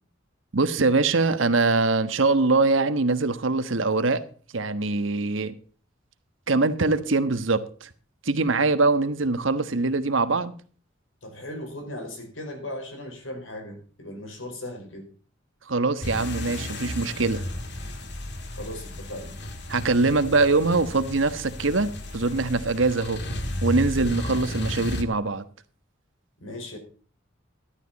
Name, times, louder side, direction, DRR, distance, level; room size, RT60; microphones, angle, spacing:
voice 1, 0.5-4.3 4.5-5.5 6.5-7.9 8.2-10.5 15.7-17.4 19.7-23.2 23.6-25.4, right 3 dB, 85° right, 1.3 m, -23 dB
voice 2, 11.2-15.1 18.5-19.4 26.4-26.8, left 1 dB, 85° left, 4.8 m, -37 dB
sound 1, 16.0-25.0, left 1 dB, 60° left, 2.1 m, -33 dB
13.5 x 12.5 x 4.1 m
head